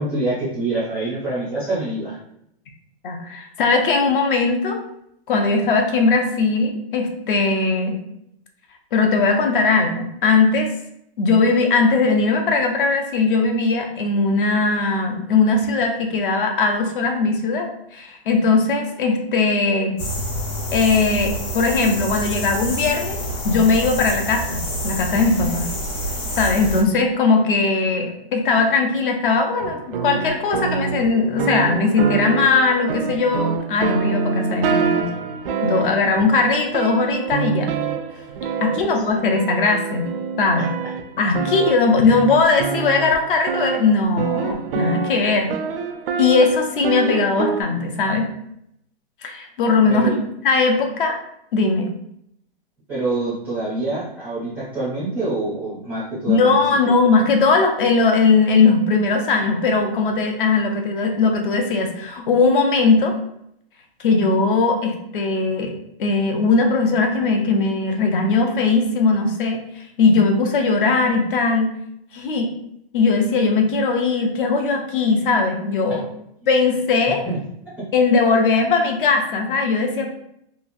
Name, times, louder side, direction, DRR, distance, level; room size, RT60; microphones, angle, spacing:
voice 1, 0.0-2.2 38.7-39.0 40.5-40.6 49.9-50.1 52.9-56.6 75.9-76.0 77.2-77.4 77.8-77.9, right 2 dB, 5° right, -10 dB, 0.4 m, -26 dB
voice 2, 3.0-4.8 5.3-8.0 8.9-10.7 11.2-20.0 20.7-23.2 23.4-25.7 26.4-35.1 35.6-37.7 38.6-40.1 40.4-40.7 41.2-45.5 46.2-48.3 49.2-51.1 51.5-51.9 56.3-63.1 64.0-65.7 66.0-71.7 72.1-72.5 72.9-76.0 76.5-77.3 77.9-80.1, left 4 dB, 55° left, 4 dB, 0.6 m, -19 dB
sound 1, 20.0-26.8, equal, 35° left, 1.0 m, -27 dB
sound 2, 29.6-47.6, right 6 dB, 65° right, 0.4 m, -26 dB
3.0 x 2.3 x 2.5 m, 0.75 s
hypercardioid pair, 160°, 31 cm